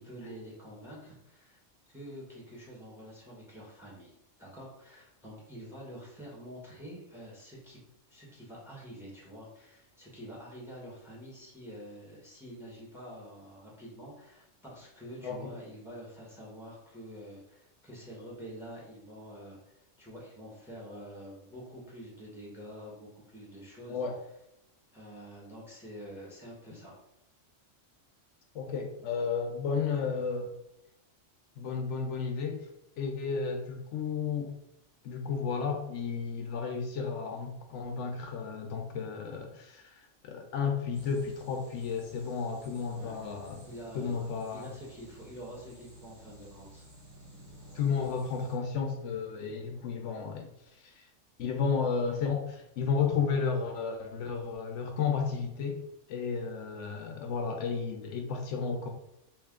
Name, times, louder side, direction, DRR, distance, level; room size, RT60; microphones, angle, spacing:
voice 1, 0.0-1.6 1.9-7.8 8.1-19.6 20.0-24.0 24.9-26.9 42.9-43.1 43.6-44.3 44.5-46.9, equal, ahead, -4 dB, 1.0 m, -47 dB
voice 2, 28.5-30.5 31.6-32.7 33.0-34.5 35.0-43.6 43.9-44.7 47.7-50.5 50.8-51.1 51.4-58.9, left 5 dB, 75° left, 4 dB, 0.9 m, -33 dB
sound 1, 40.9-48.6, right 1 dB, 60° right, 1.6 m, -53 dB
3.2 x 3.0 x 3.6 m, 0.81 s
omnidirectional pair, 1.3 m